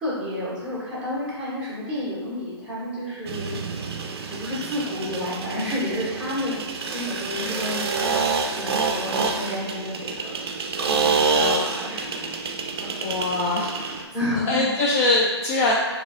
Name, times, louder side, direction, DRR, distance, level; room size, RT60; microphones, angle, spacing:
voice 1, 0.0-3.6 4.3-6.6 6.9-10.4 10.8-12.2 12.8-13.0 14.1-14.7, left 1 dB, 10° right, -10 dB, 1.4 m, -30 dB
sound 1, 3.3-14.1, right 4 dB, 60° right, 0.4 m, -27 dB
voice 2, 13.0-14.0 14.5-15.7, left 2 dB, 35° left, -3 dB, 0.4 m, -23 dB
3.9 x 2.7 x 2.4 m, 1.2 s
hypercardioid pair, 145°, 14 cm